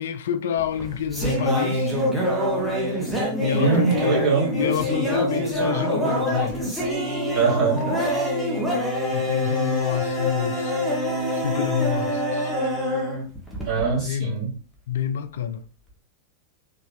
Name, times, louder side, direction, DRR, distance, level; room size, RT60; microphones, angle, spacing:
voice 1, 0.0-2.0 2.8-6.6 9.1-10.8 11.3-12.5 14.0-14.4 14.9-15.6, left 8 dB, 60° left, 0.4 m, -28 dB
sound 1, 0.6-14.0, equal, ahead, 1.6 m, -25 dB
voice 2, 3.5-4.5 7.3-7.9 13.6-14.5, right 5 dB, 30° right, 2.4 m, -22 dB
5.2 x 2.9 x 3.2 m
figure-of-eight pair, 90°, 0 cm